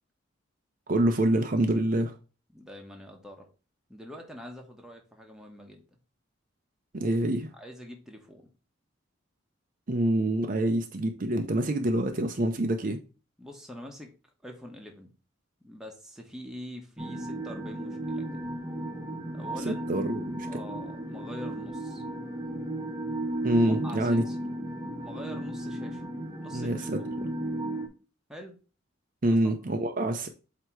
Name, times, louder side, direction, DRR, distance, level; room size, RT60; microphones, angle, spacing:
voice 1, 0.9-2.1 6.9-7.5 9.9-13.0 19.7-20.5 23.4-24.2 26.5-27.0 29.2-30.3, right 1 dB, 40° right, 0.6 m, -26 dB
voice 2, 2.5-3.5 3.9-6.0 7.5-8.5 13.4-14.1 14.4-15.1 15.6-18.5 19.3-19.9 20.5-22.0 23.6-24.4 25.0-26.0 26.4-27.2 28.3-28.6 29.3-29.5, equal, 5° right, 1.1 m, -45 dB
sound 1, 17.0-27.9, right 1 dB, 20° right, 1.2 m, -34 dB
7.9 x 2.9 x 4.6 m
head